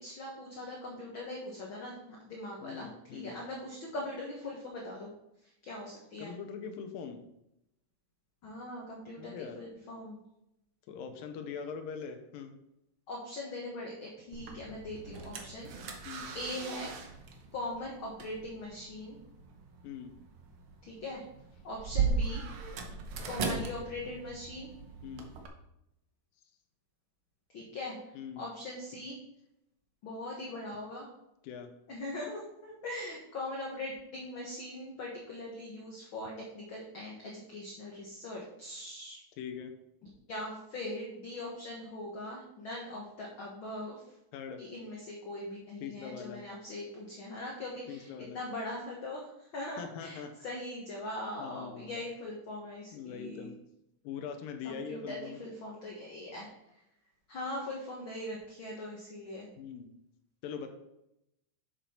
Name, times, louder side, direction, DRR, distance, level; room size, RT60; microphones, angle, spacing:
voice 1, 0.0-1.9 2.3-5.1 5.4-6.3 8.4-10.2 13.1-16.1 16.3-16.9 17.5-19.2 20.8-21.2 21.6-22.5 23.3-24.7 27.5-28.0 28.4-29.2 30.0-31.1 31.9-39.2 40.3-44.1 44.6-53.5 54.6-56.8 57.3-59.5, left 1 dB, 55° left, -2 dB, 1.5 m, -41 dB
voice 2, 2.6-3.4 6.2-7.2 9.2-9.6 10.9-12.5 16.1-16.3 19.8-20.1 25.0-25.3 28.2-28.4 31.4-31.7 39.4-39.7 44.3-44.6 45.8-46.4 47.9-48.4 49.8-50.3 51.4-52.0 52.9-53.6 54.0-55.4 59.6-59.9 60.4-60.7, left 6 dB, 85° left, 6 dB, 2.5 m, -42 dB
sound 1, 14.3-25.5, right 4 dB, 90° right, 1.1 m, -38 dB
7.3 x 7.0 x 4.4 m, 0.83 s
omnidirectional pair, 3.9 m